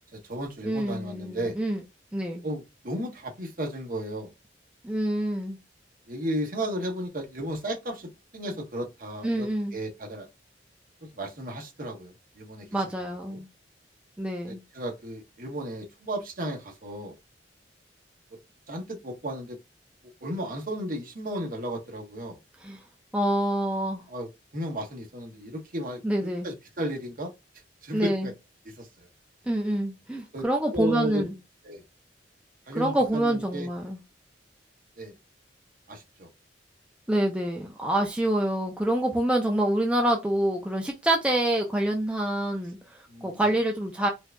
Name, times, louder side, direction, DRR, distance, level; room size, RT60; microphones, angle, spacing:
voice 1, 0.1-1.6 2.4-4.3 6.1-9.5 9.7-10.3 11.1-12.7 13.3-13.4 14.4-17.2 18.7-19.6 20.2-22.4 24.1-27.3 27.8-28.3 28.6-29.1 30.3-31.3 31.6-31.8 32.7-33.7 35.0-35.1 35.9-36.3 43.1-43.5, right 1 dB, 50° right, 1.2 m, -34 dB
voice 2, 0.6-1.8 2.1-2.4 4.8-5.6 9.2-9.8 12.7-13.5 14.2-14.6 22.6-22.8 23.1-24.0 26.0-26.5 27.9-28.3 29.5-31.3 32.7-34.0 37.1-44.1, right 1 dB, 5° right, 0.5 m, -26 dB
4.5 x 2.6 x 2.2 m
head